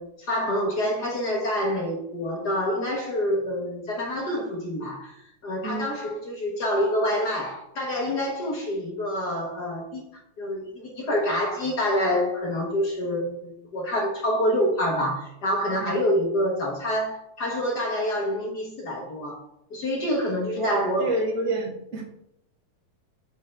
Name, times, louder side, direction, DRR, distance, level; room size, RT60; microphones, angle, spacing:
voice 1, 0.0-5.1 5.4-10.1 10.4-19.4 19.7-21.2, equal, 50° left, -1 dB, 1.2 m, -27 dB
voice 2, 20.6-22.0, right 2 dB, 30° right, -2 dB, 1.4 m, -28 dB
6.7 x 6.2 x 3.4 m, 0.78 s
omnidirectional pair, 3.8 m